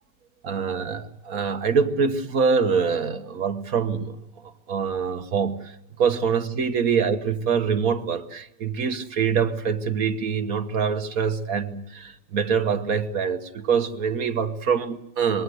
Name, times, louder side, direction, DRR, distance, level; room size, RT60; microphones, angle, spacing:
voice 1, 0.4-4.2 4.7-15.4, right 6 dB, 55° right, 1.7 m, -25 dB
25.5 x 21.0 x 8.0 m
omnidirectional pair, 1.9 m